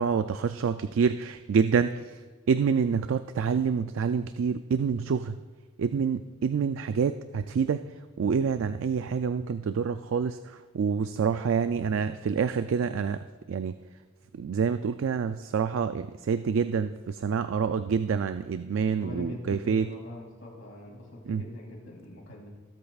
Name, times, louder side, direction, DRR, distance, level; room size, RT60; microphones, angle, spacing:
voice 1, 0.0-2.2 2.5-5.4 5.8-7.8 8.2-13.8 14.3-19.9 21.2-21.5, right 6 dB, 70° right, 11 dB, 0.3 m, -27 dB
voice 2, 19.0-22.5, left 1 dB, 75° left, -2 dB, 2.8 m, -42 dB
18.5 x 8.5 x 2.4 m, 1.4 s
head